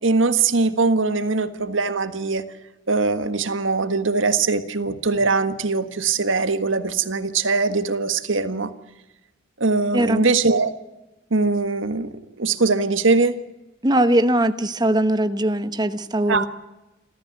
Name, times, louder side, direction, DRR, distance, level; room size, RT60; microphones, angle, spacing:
voice 1, 0.0-2.4 2.9-8.7 9.6-10.7 11.3-13.3 16.3-16.5, right 3 dB, 70° right, 10 dB, 1.6 m, -21 dB
voice 2, 13.8-16.5, right 1 dB, 20° right, 10 dB, 1.1 m, -20 dB
27.5 x 14.5 x 9.6 m, 1.0 s
head